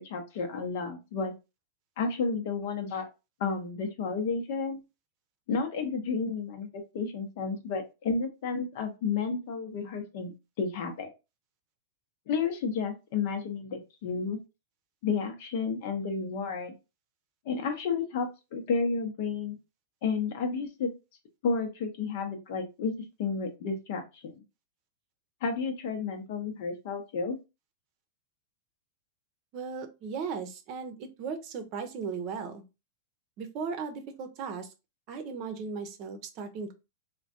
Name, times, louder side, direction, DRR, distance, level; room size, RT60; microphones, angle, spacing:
voice 1, 0.0-1.3 2.0-3.1 3.4-4.8 5.5-11.1 12.3-14.4 15.0-16.7 17.5-19.6 20.0-20.9 21.4-22.9 23.2-24.4 25.4-27.4, left 5 dB, 60° left, 5 dB, 0.7 m, -31 dB
voice 2, 29.5-32.6 33.4-34.7 35.1-36.7, right 5 dB, 50° right, 7 dB, 0.6 m, -37 dB
3.3 x 2.2 x 2.5 m, 0.27 s
hypercardioid pair, 105°, 0 cm